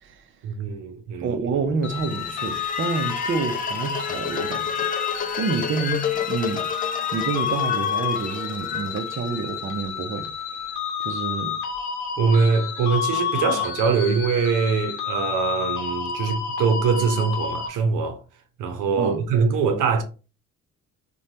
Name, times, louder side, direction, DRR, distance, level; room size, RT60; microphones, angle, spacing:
voice 1, 0.4-1.4 12.2-18.2 18.6-20.0, right 5 dB, 85° right, 0.6 m, -23 dB
voice 2, 1.2-4.9 5.1-6.7 7.1-10.3 11.0-11.6 19.0-19.2, right 5 dB, 40° right, 0.5 m, -28 dB
sound 1, 1.8-17.7, left 7 dB, 70° left, 0.8 m, -30 dB
sound 2, 1.9-10.0, left 7 dB, 30° left, 0.4 m, -31 dB
3.1 x 2.2 x 2.6 m
cardioid pair, 90°, 30 cm